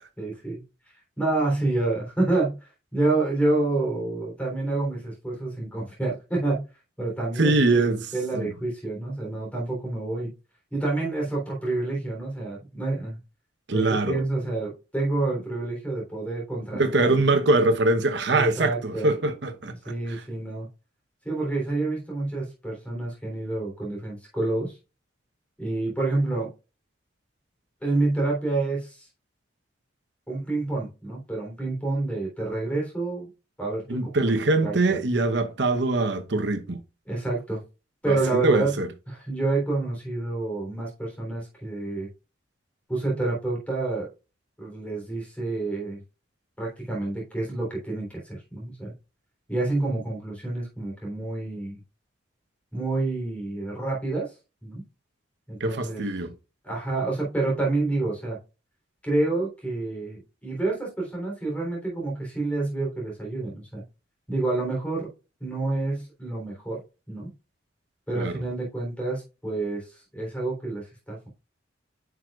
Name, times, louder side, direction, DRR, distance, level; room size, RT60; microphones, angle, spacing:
voice 1, 0.2-0.6 1.2-2.6 2.9-6.6 7.0-10.3 10.7-13.2 13.7-17.3 18.3-19.1 19.6-20.7 21.2-24.8 25.6-26.5 27.8-29.1 30.3-33.3 33.6-34.0 34.6-35.0 37.1-37.6 38.0-38.7 39.1-42.1 42.9-44.1 44.6-46.0 46.6-48.9 49.5-51.8 52.7-54.3 54.6-54.8 55.5-56.0 56.6-58.4 59.0-63.8 64.3-65.1 65.4-66.8 67.1-67.3 68.1-71.3, right 2 dB, 5° left, 3.4 m, -28 dB
voice 2, 7.4-8.5 13.7-14.2 16.7-20.2 33.9-36.8 38.1-38.9 55.6-56.3 68.1-68.4, right 2 dB, 60° right, 1.0 m, -23 dB
9.6 x 6.1 x 2.4 m
head